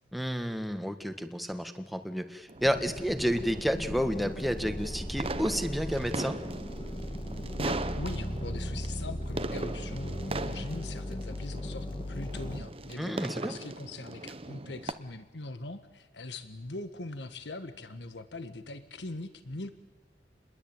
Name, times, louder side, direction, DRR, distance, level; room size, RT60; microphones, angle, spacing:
voice 1, 0.1-6.4 13.0-13.5, equal, ahead, 8 dB, 1.6 m, -31 dB
sound 1, 2.5-14.9, right 2 dB, 30° right, 1.1 m, -40 dB
sound 2, 2.5-8.4, right 2 dB, 70° right, 2.5 m, -54 dB
sound 3, 2.6-12.6, equal, 30° left, 1.9 m, -37 dB
voice 2, 7.5-19.7, left 2 dB, 75° left, 10 dB, 1.6 m, -41 dB
29.0 x 21.5 x 8.9 m, 1.2 s
head